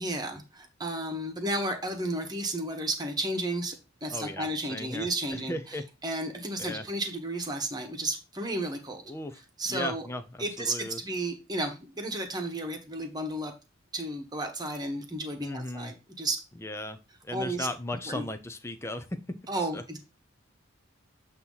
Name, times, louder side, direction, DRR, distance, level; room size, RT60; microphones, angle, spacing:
voice 1, 0.0-3.7 4.0-5.5 6.0-9.0 9.6-10.0 10.4-13.5 13.9-16.4 17.3-17.7 18.1-18.2 19.5-20.0, right 1 dB, 20° right, 4 dB, 1.3 m, -33 dB
voice 2, 4.1-5.8 6.6-6.9 9.1-9.4 9.7-11.0 15.4-15.9 16.6-19.2 19.6-19.8, left 1 dB, 15° left, 8 dB, 0.5 m, -37 dB
8.0 x 2.9 x 5.5 m, 0.28 s
head